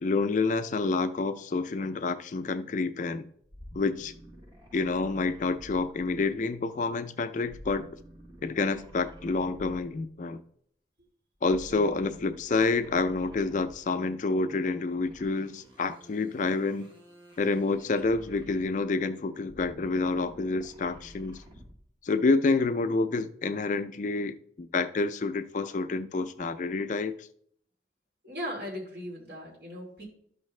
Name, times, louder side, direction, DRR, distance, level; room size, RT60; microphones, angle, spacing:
voice 1, 0.0-3.3 3.7-4.1 4.7-7.9 8.4-10.4 11.4-16.9 17.4-21.4 22.0-27.3, left 3 dB, 45° left, 0.4 m, -28 dB
sound 1, 3.4-6.5 7.4-10.1 11.4-14.0 15.0-18.9 19.4-21.9, equal, 25° right, 1.2 m, -50 dB
voice 2, 28.2-30.0, equal, 60° right, 2.9 m, -38 dB
12.5 x 5.5 x 3.2 m
head